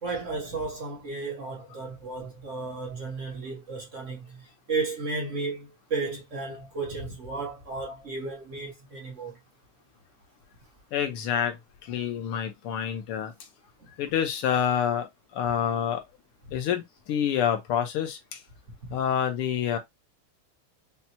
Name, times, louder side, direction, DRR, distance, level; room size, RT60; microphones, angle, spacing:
voice 1, 0.0-9.4 18.8-19.0, right 3 dB, 45° right, 1.1 m, -34 dB
voice 2, 10.9-13.3 14.0-16.0 16.5-18.4 18.9-19.8, left 9 dB, 90° left, 1.9 m, -28 dB
5.8 x 2.2 x 2.8 m
omnidirectional pair, 2.4 m